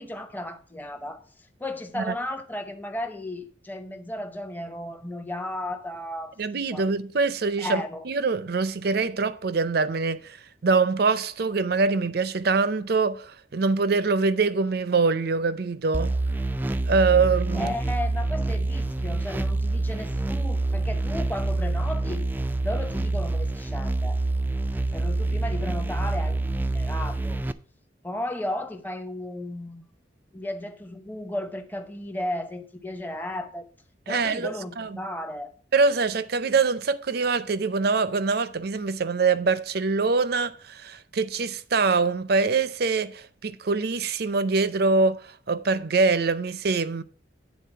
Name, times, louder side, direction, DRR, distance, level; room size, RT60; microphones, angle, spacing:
voice 1, 0.0-6.4 6.7-6.9 7.6-8.0 17.5-22.3 22.6-24.2 24.9-27.4 28.0-29.8 30.3-33.7 34.1-35.5, left 1 dB, 10° left, 0.8 m, -34 dB
voice 2, 6.4-10.4 10.6-16.1 16.9-17.7 34.1-35.0 35.7-47.0, right 4 dB, 60° right, 0.5 m, -24 dB
sound 1, 15.9-27.5, right 2 dB, 10° right, 0.3 m, -26 dB
9.4 x 4.0 x 6.8 m
head